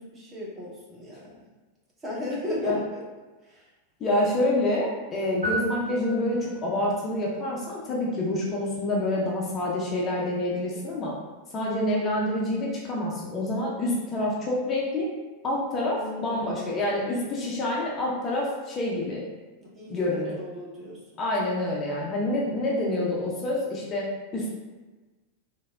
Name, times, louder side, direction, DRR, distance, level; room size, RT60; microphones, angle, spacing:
voice 1, 0.0-1.5 2.0-3.0 3.4-3.7 10.6-11.0 15.8-16.7 19.6-21.3, left 1 dB, 20° right, -5 dB, 0.7 m, -36 dB
voice 2, 4.0-11.2 11.5-15.1 15.4-19.2 19.9-20.4 21.2-24.5, left 1 dB, 25° left, -4 dB, 0.5 m, -27 dB
sound 1, 5.4-6.9, equal, 75° right, 1.1 m, -33 dB
3.2 x 2.0 x 2.2 m, 1.2 s
figure-of-eight pair, 90°, 0 cm